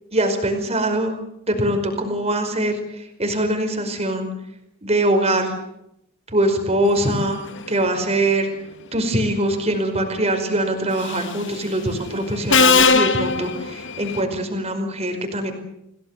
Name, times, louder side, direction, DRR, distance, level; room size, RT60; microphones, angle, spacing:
voice 1, 0.1-1.1 1.5-4.3 4.8-5.5 6.3-8.5 8.9-15.5, right 1 dB, 30° right, 5 dB, 5.2 m, -22 dB
Subway metro underground, 11.0-11.4 12.5-14.2, left 5 dB, 55° left, 1.6 m, -18 dB
28.0 x 18.0 x 7.7 m, 0.81 s
head